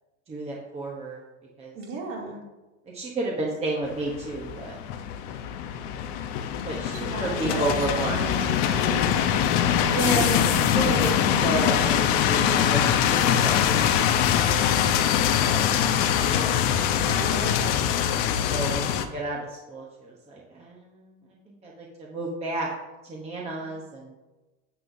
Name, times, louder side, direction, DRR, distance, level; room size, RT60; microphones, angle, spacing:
voice 1, 0.3-1.2 1.6-1.7 2.9-4.7 6.6-8.2 9.9-14.9 15.5-16.6 18.4-22.7 23.0-24.1, right 2 dB, 15° right, -3 dB, 0.9 m, -32 dB
voice 2, 1.7-2.4 6.9-9.3 9.8-9.9 17.0-17.9, right 2 dB, 50° right, -2 dB, 2.7 m, -35 dB
sound 1, 3.8-19.1, left 9 dB, 60° left, 0.9 m, -23 dB
9.8 x 7.6 x 2.7 m, 1.1 s
supercardioid pair, 150°, 40 cm